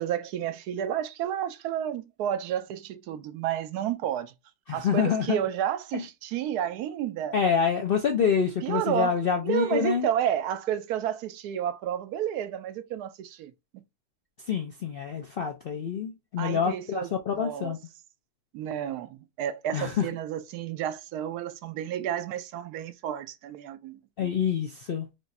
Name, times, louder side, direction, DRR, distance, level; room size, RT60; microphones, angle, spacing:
voice 1, 0.0-4.3 4.7-7.4 8.6-9.2 9.4-13.8 16.4-17.7 18.5-24.3, right 10 dB, 80° right, 1.1 m, -31 dB
voice 2, 4.7-5.4 5.9-6.0 7.3-10.1 14.5-17.8 19.7-20.1 24.2-25.1, left 7 dB, 65° left, 0.5 m, -27 dB
3.4 x 2.5 x 4.0 m
omnidirectional pair, 1.6 m